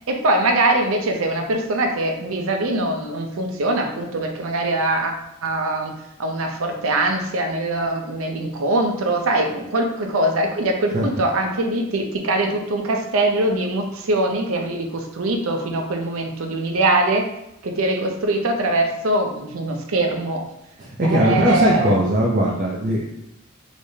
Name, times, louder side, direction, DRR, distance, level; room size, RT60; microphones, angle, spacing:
voice 1, 0.1-5.9 6.2-17.3 17.6-20.5 21.0-22.0, right 2 dB, 85° right, 3 dB, 0.6 m, -22 dB
voice 2, 20.8-23.0, right 1 dB, 40° right, -4 dB, 0.5 m, -19 dB
3.3 x 3.2 x 2.7 m, 0.83 s
head